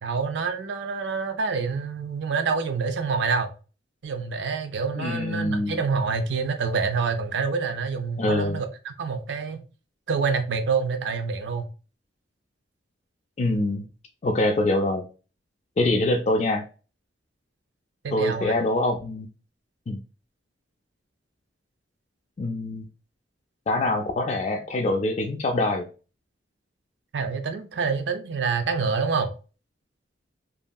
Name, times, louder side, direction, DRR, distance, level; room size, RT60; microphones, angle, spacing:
voice 1, 0.0-3.5 4.0-9.6 10.1-11.6 18.0-18.5 27.1-29.3, right 5 dB, 70° right, 0.4 m, -27 dB
voice 2, 5.0-5.8 8.2-8.6 13.4-13.8 14.2-15.1 15.8-16.7 18.1-19.3 19.9-20.0 22.4-22.9 23.7-25.9, left 2 dB, 35° left, 0.3 m, -24 dB
2.9 x 2.6 x 2.2 m
head